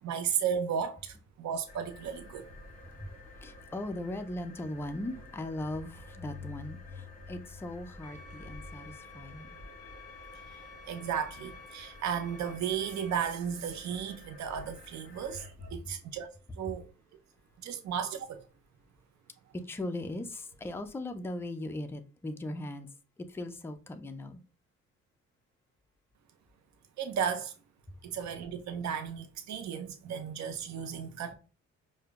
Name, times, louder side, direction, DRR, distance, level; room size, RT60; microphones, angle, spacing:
voice 1, 0.0-2.4 10.9-16.3 16.6-16.9 17.6-18.4 27.0-27.5 28.0-31.3, right 7 dB, 65° right, 0.6 m, -34 dB
sound 1, 1.7-15.7, left 3 dB, 30° left, 1.2 m, -50 dB
voice 2, 2.8-9.5 15.8-16.0 16.7-16.8 19.5-22.9 23.2-24.4 27.9-28.0, left 1 dB, 10° left, 0.3 m, -39 dB
sound 2, 8.0-13.1, left 4 dB, 50° left, 0.7 m, -52 dB
5.0 x 2.2 x 2.3 m
cardioid pair, 90°, 30 cm